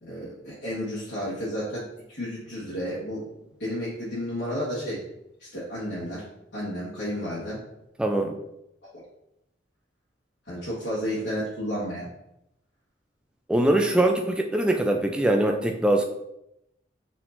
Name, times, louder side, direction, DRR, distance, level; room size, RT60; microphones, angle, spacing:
voice 1, 0.0-3.2 3.5-5.0 5.4-6.3 6.5-7.6 8.8-9.0 10.4-12.1, equal, 70° left, -9 dB, 1.3 m, -32 dB
voice 2, 8.0-8.4 13.5-16.0, right 1 dB, 5° right, 3 dB, 0.3 m, -22 dB
4.8 x 3.6 x 2.5 m, 0.83 s
head